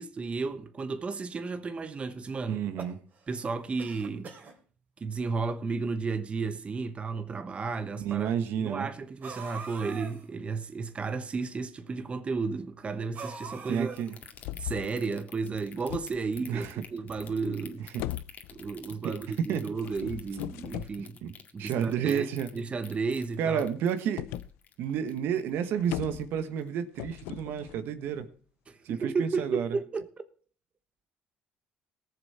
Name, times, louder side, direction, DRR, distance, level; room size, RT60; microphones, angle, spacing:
voice 1, 0.0-2.6 3.3-4.3 5.0-8.3 8.6-14.0 14.6-17.9 18.5-21.2 21.5-22.3 22.5-23.7 28.7-30.3, right 4 dB, 30° right, 1.1 m, -33 dB
sound 1, 2.5-3.4 3.8-4.5 5.4-5.5 5.7-5.8 6.7-6.8 9.2-10.3 13.1-14.3, right 5 dB, 50° right, 3.2 m, -43 dB
voice 2, 2.5-3.0 8.0-8.9 13.7-14.2 16.4-16.8 19.5-19.6 21.0-21.3 21.6-22.7 23.4-24.3 24.8-28.3 28.8-29.7, right 8 dB, 75° right, 1.4 m, -31 dB
sound 2, 14.0-25.6 25.9-26.2 26.6-26.7, left 7 dB, 50° left, 1.9 m, -50 dB
sound 3, 14.3-14.9 15.4-16.5 17.1-17.7 18.0-18.8 19.8-21.0 24.2-24.5 24.9-25.0 25.2-25.3 25.5-26.5 27.0-28.2, left 15 dB, 90° left, 0.6 m, -39 dB
18.5 x 7.1 x 4.3 m
cardioid pair, 90°, 4 cm